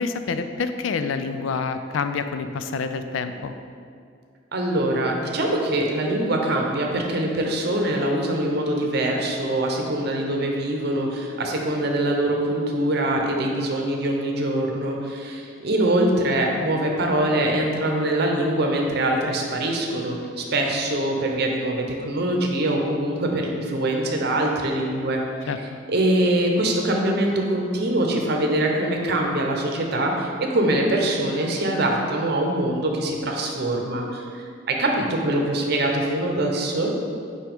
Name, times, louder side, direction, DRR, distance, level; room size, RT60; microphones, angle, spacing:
voice 1, 0.0-3.5 25.5-25.6, left 5 dB, 85° left, 9 dB, 0.4 m, -27 dB
voice 2, 4.5-25.5 25.9-36.9, right 1 dB, 55° right, 1 dB, 0.7 m, -23 dB
5.9 x 4.6 x 3.5 m, 2.3 s
head